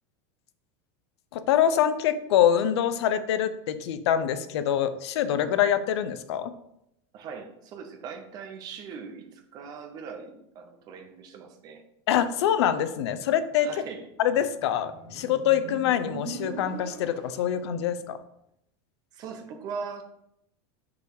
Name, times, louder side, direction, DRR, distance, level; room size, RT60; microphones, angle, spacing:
voice 1, 1.3-6.5 12.1-13.7 14.2-18.2, left 10 dB, 80° left, 12 dB, 0.6 m, -25 dB
voice 2, 7.1-11.8 13.6-14.0 19.1-20.0, right 5 dB, 30° right, 6 dB, 0.7 m, -40 dB
Motorcycle, 14.4-17.9, right 3 dB, 45° right, 1.1 m, -41 dB
5.6 x 4.0 x 4.7 m, 0.78 s
supercardioid pair, 175°, 14 cm